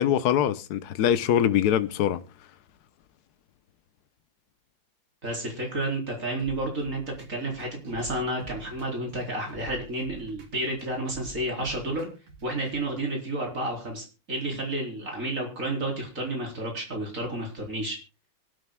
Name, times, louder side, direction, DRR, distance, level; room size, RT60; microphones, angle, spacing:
voice 1, 0.0-2.2, left 10 dB, 60° left, 1.3 m, -23 dB
voice 2, 5.2-12.1 12.4-18.0, right 1 dB, 40° right, 4.5 m, -31 dB
sound 1, 6.4-12.8, right 2 dB, 85° right, 2.9 m, -47 dB
25.5 x 9.1 x 2.3 m
omnidirectional pair, 2.1 m